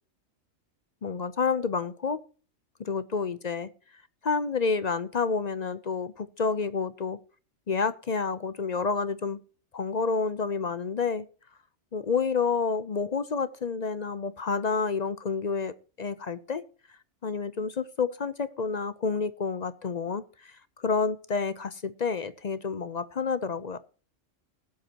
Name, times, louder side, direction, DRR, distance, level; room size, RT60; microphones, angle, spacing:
voice 1, 1.0-2.2 2.8-3.7 4.2-7.2 7.7-9.4 9.7-11.2 11.9-16.6 17.2-20.5 20.8-23.8, left 5 dB, 45° left, 0.6 m, -29 dB
19.5 x 8.1 x 2.9 m
omnidirectional pair, 1.3 m